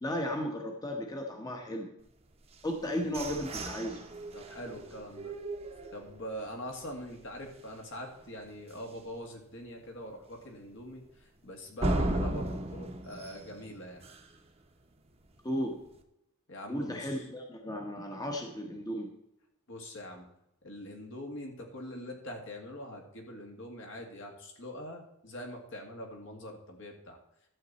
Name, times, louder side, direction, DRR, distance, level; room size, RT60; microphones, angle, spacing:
voice 1, 0.0-1.9 2.6-4.0 15.4-15.8 16.7-19.1, equal, 20° left, 2 dB, 1.1 m, -35 dB
sound 1, 2.5-6.4 6.9-7.0 7.3-7.7 8.1-8.2 8.7-8.8 11.8-14.5, right 1 dB, 30° right, 1.0 m, -36 dB
voice 2, 4.3-5.3 5.9-14.1 16.5-17.2 19.7-20.3 20.6-27.2, equal, 60° left, 1 dB, 2.1 m, -43 dB
12.5 x 7.4 x 4.1 m, 0.82 s
head